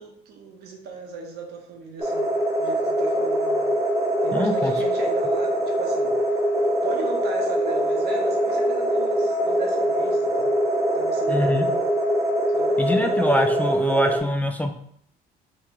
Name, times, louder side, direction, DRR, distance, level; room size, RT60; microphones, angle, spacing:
voice 1, 0.0-2.3 2.6-3.7 4.2-6.2 6.6-10.6 10.9-11.8 12.5-13.1, right 3 dB, 75° right, 2 dB, 0.9 m, -36 dB
sound 1, 2.0-14.2, equal, 15° right, 0.7 m, -23 dB
voice 2, 4.3-4.7 11.3-11.7 12.8-14.7, equal, 10° left, 4 dB, 0.3 m, -24 dB
3.0 x 2.8 x 3.5 m, 0.67 s
cardioid pair, 110°, 17 cm